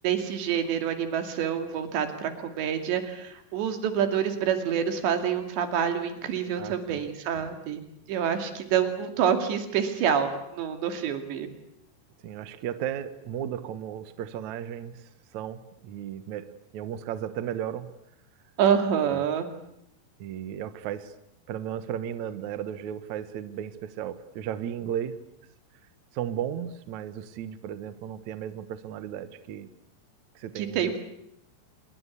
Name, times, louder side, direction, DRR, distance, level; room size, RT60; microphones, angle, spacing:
voice 1, 0.0-7.8 8.1-11.5 18.6-19.5 30.6-31.0, right 8 dB, 90° right, 7 dB, 4.7 m, -27 dB
voice 2, 6.6-7.0 12.2-17.9 19.0-19.3 20.2-21.1 21.5-25.2 26.1-29.7 30.4-31.0, right 10 dB, 60° right, 12 dB, 2.0 m, -35 dB
26.0 x 22.0 x 8.4 m, 0.76 s
omnidirectional pair, 4.9 m